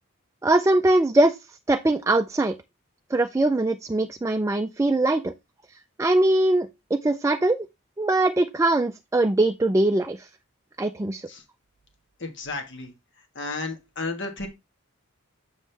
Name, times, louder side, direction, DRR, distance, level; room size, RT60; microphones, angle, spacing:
voice 1, 0.4-1.4 1.7-2.5 3.1-5.3 6.0-7.7 8.0-10.3 10.8-11.3, right 2 dB, 15° right, 0.3 m, -22 dB
voice 2, 12.2-14.5, left 3 dB, 55° left, 1.4 m, -33 dB
7.4 x 6.3 x 3.3 m
head